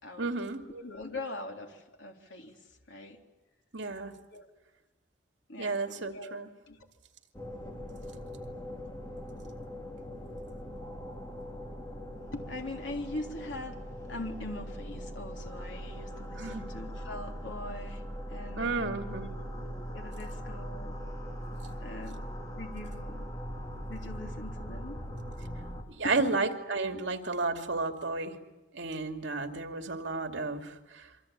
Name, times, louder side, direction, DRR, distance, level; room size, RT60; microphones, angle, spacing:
voice 1, 0.2-0.6 3.7-4.1 5.6-6.5 16.4-16.7 18.6-19.3 25.9-28.4 28.7-31.1, right 3 dB, 70° right, 5 dB, 2.5 m, -32 dB
voice 2, 0.7-2.6 2.9-3.2 4.3-4.5 5.5-6.4 6.7-6.9 12.3-18.0 18.3-19.2 19.9-21.0 21.8-22.2 22.5-23.3 23.9-25.0 26.0-26.1, left 2 dB, 75° left, 2 dB, 3.5 m, -42 dB
sound 1, 7.3-25.8, equal, 20° left, 3.1 m, -40 dB
27.5 x 24.5 x 8.8 m, 1.1 s
head